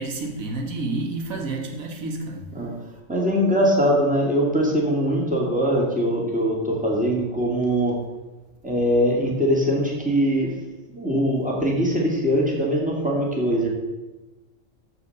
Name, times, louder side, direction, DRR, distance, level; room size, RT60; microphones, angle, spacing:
voice 1, 0.0-2.5, right 2 dB, 85° right, 2 dB, 1.9 m, -29 dB
voice 2, 3.1-7.9 8.6-10.5 10.9-13.7, equal, 5° right, -3 dB, 2.6 m, -22 dB
14.5 x 4.9 x 6.6 m, 1.1 s
omnidirectional pair, 1.4 m